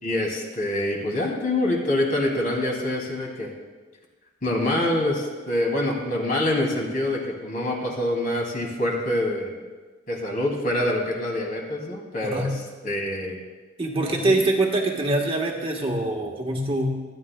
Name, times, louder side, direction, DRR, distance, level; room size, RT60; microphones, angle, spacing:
voice 1, 0.0-3.5 4.4-9.5 10.1-12.5 12.8-13.4 14.2-14.4, left 1 dB, 45° left, -1 dB, 2.5 m, -25 dB
voice 2, 12.2-12.6 13.8-17.0, right 2 dB, 30° right, 1 dB, 1.3 m, -24 dB
25.5 x 9.8 x 2.3 m, 1.3 s
head